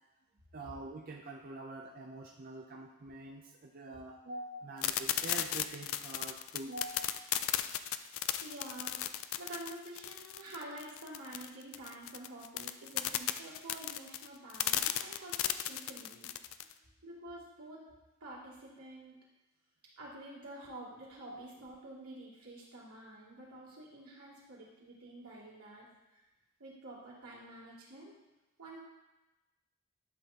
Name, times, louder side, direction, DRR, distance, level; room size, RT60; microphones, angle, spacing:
voice 1, 0.5-7.4 21.3-21.4 25.4-25.5, right 2 dB, 40° right, 0 dB, 0.5 m, -45 dB
sound 1, 4.8-16.7, left 12 dB, 65° left, 0.4 m, -35 dB
voice 2, 8.4-16.3 17.0-17.9 18.2-19.2 20.0-25.9 26.1-26.2 26.6-28.1 28.6-28.8, right 1 dB, 85° right, -7 dB, 2.7 m, -49 dB
11.0 x 6.4 x 2.9 m, 1.1 s
head